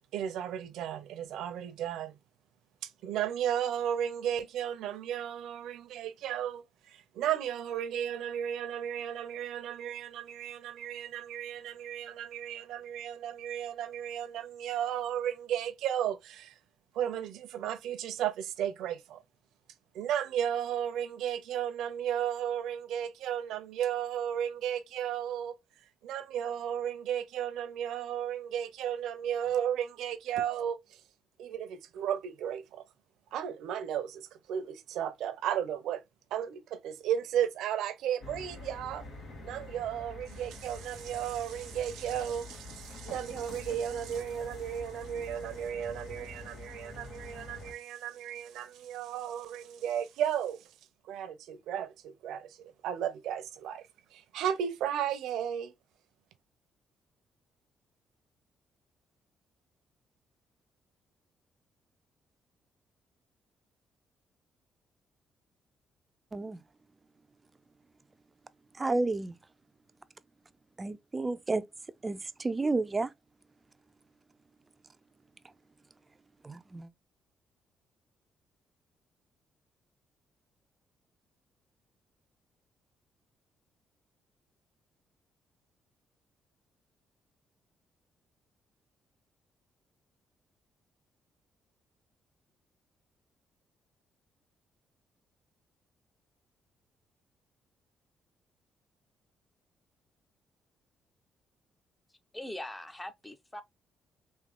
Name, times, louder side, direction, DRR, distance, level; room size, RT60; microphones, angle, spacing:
voice 1, 0.1-2.2 2.8-16.5 16.9-19.2 19.9-25.5 26.0-31.0 31.4-32.8 33.3-36.0 36.3-39.0 39.4-50.7 51.1-55.7, right 9 dB, 85° right, 0.7 m, -34 dB
sound 1, 38.2-47.7, left 2 dB, 65° left, 1.7 m, -46 dB
voice 2, 66.3-66.6 68.7-69.4 70.8-71.6 72.0-73.1 76.4-76.9, right 3 dB, 25° right, 0.5 m, -31 dB
voice 3, 102.3-103.6, left 1 dB, 15° left, 0.8 m, -41 dB
3.6 x 2.7 x 3.5 m
cardioid pair, 90°, 0 cm